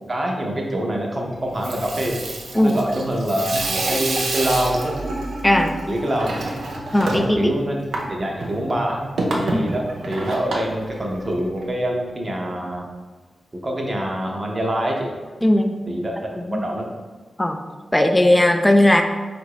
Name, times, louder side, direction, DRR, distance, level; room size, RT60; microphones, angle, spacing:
voice 1, 0.1-2.2 2.6-4.9 5.9-6.3 7.0-12.9 13.6-15.1 15.9-16.9, right 1 dB, 35° right, 0 dB, 0.8 m, -25 dB
Water tap faucet / Sink (filling or washing), 1.4-11.6, right 2 dB, 85° right, 0.6 m, -28 dB
voice 2, 5.4-5.8 6.9-7.5 9.5-9.7 15.4-15.9 16.5-16.6 17.4-17.6 17.9-19.0, left 1 dB, 10° left, 4 dB, 0.3 m, -17 dB
3.9 x 2.6 x 4.7 m, 1.4 s
wide cardioid pair, 90°, 0 cm